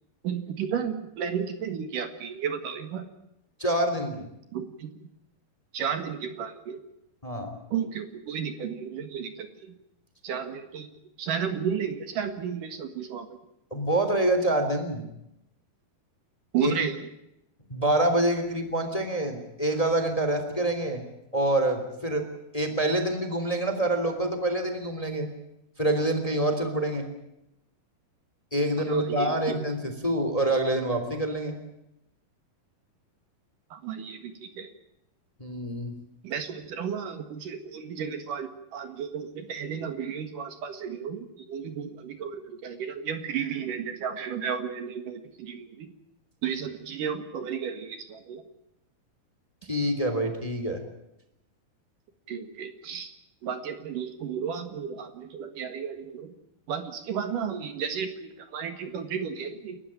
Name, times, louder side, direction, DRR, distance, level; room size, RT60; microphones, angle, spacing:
voice 1, 0.2-3.1 4.5-4.9 5.7-6.8 7.7-9.7 10.2-10.9 11.2-13.3 16.5-17.1 28.9-29.5 33.7-34.7 36.2-45.9 46.4-48.4 52.3-53.1 53.4-56.3 56.7-59.8, right 7 dB, 65° right, 8 dB, 3.1 m, -33 dB
voice 2, 3.6-4.3 7.2-7.5 13.7-15.0 16.6-16.7 17.7-21.0 21.3-22.2 22.5-25.3 25.8-27.0 28.5-31.5 35.4-35.9 49.7-50.8, right 1 dB, 10° left, 7 dB, 2.7 m, -26 dB
29.5 x 14.5 x 8.8 m, 0.86 s
omnidirectional pair, 4.3 m